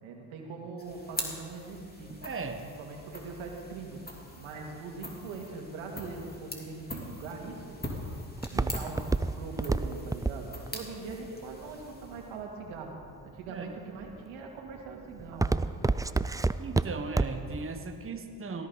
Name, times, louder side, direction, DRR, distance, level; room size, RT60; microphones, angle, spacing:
voice 1, 0.0-2.1 2.8-7.8 8.5-13.0 13.2-15.6, right 4 dB, 75° right, 1 dB, 2.2 m, -41 dB
sound 1, 0.8-12.5, left 1 dB, 20° left, 3.1 m, -43 dB
voice 2, 2.1-2.7 8.5-8.8 13.5-13.7 16.6-18.7, right 4 dB, 25° right, 6 dB, 1.3 m, -37 dB
Walk footsteps, 7.3-12.4 13.0-13.5 14.0-14.4 14.7-17.6 17.9-18.0, right 3 dB, 10° right, 0.4 m, -29 dB
18.0 x 13.5 x 4.1 m, 2.3 s
hypercardioid pair, 50°, 48 cm